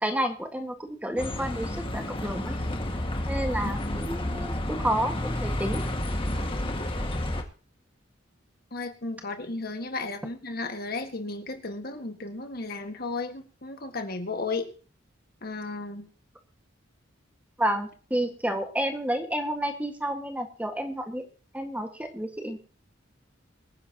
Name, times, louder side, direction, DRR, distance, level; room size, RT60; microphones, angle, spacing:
voice 1, 0.0-2.6 3.2-5.8 17.6-21.2 21.5-22.6, right 1 dB, 10° right, 5 dB, 1.7 m, -30 dB
Bus, 1.2-7.4, left 1 dB, 30° left, 1.8 m, -30 dB
voice 2, 8.7-14.7 15.4-16.1, left 3 dB, 55° left, 6 dB, 1.8 m, -34 dB
24.5 x 10.0 x 2.9 m, 0.39 s
head